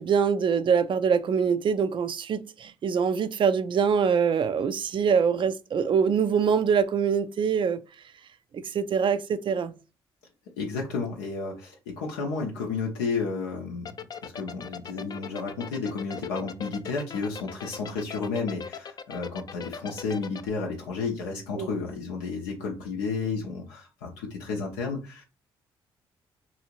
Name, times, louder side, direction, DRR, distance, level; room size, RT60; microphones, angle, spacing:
voice 1, 0.0-7.8 8.5-9.7 21.6-21.7, right 6 dB, 45° right, 0.4 m, -24 dB
voice 2, 10.6-13.9 14.2-25.2, left 4 dB, 85° left, 0.5 m, -32 dB
sound 1, 13.9-20.5, left 6 dB, 35° left, 0.4 m, -38 dB
2.7 x 2.5 x 2.9 m
hypercardioid pair, 50°, 12 cm